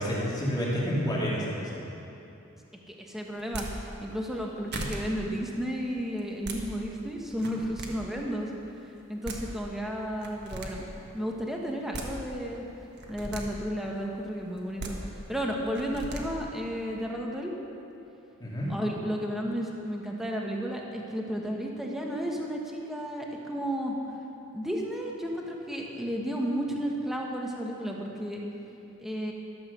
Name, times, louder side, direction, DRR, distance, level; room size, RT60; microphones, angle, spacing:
voice 1, 0.0-1.8 18.4-18.7, equal, 20° left, -6 dB, 2.4 m, -29 dB
voice 2, 2.9-3.7 4.0-8.5 9.1-10.8 11.1-12.6 13.1-17.5 18.7-23.9 24.5-28.4 29.0-29.3, equal, ahead, -1 dB, 1.1 m, -33 dB
sound 1, 3.4-3.7 4.4-4.5 4.7-5.0 6.2-6.6 7.3-7.9 9.0-9.1 9.2-9.4 10.2-10.7 11.7-12.1 13.0-13.4 14.6-14.9 15.8-16.2, right 2 dB, 50° right, 1.3 m, -37 dB
13.0 x 7.4 x 6.5 m, 2.8 s
head